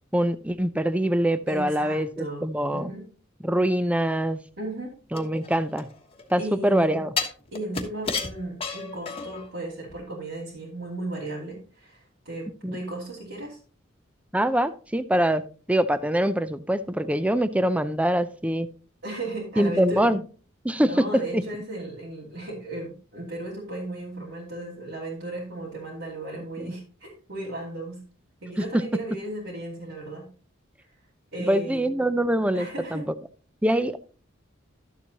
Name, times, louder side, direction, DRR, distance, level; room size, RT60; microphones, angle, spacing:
voice 1, 0.1-2.9 3.4-4.4 5.1-5.9 6.3-7.1 12.6-12.8 14.3-15.4 15.7-18.7 19.6-20.2 20.6-21.0 21.3-21.4 26.6-26.7 28.6-28.7 31.4-33.1 33.6-34.0, right 1 dB, 5° right, 13 dB, 0.5 m, -24 dB
voice 2, 1.5-3.1 4.6-4.9 6.4-7.0 7.5-13.6 19.0-20.1 20.8-28.0 28.4-30.2 31.3-31.9 32.5-33.1 33.7-33.8, right 1 dB, 70° right, -7 dB, 3.0 m, -35 dB
sound 1, 5.1-6.3 7.2-9.5 9.9-10.0, left 5 dB, 30° left, 1.2 m, -32 dB
12.5 x 7.3 x 2.9 m, 0.38 s
head